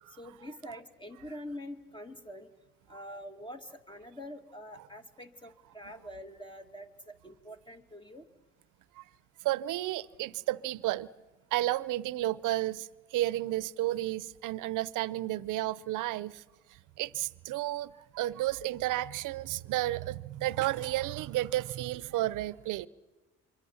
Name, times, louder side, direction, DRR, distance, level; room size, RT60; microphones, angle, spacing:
voice 1, 0.2-2.5 2.9-8.3 17.9-18.0, equal, 15° left, 2.1 m, -45 dB
voice 2, 9.4-11.1 11.5-16.4 17.0-22.9, right 15 dB, 90° right, 0.7 m, -32 dB
27.0 x 24.0 x 7.2 m
cardioid pair, 90°, 30 cm